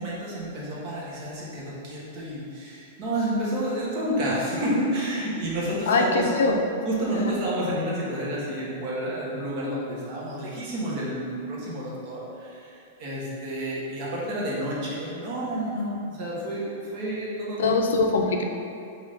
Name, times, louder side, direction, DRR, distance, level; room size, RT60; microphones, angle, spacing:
voice 1, 0.0-6.3 6.8-17.7, right 1 dB, 35° right, -6 dB, 1.1 m, -30 dB
voice 2, 5.9-6.6 7.1-7.4 17.6-18.4, left 3 dB, 80° left, 3 dB, 0.4 m, -22 dB
5.4 x 2.6 x 3.3 m, 2.6 s
supercardioid pair, 165°, 0 cm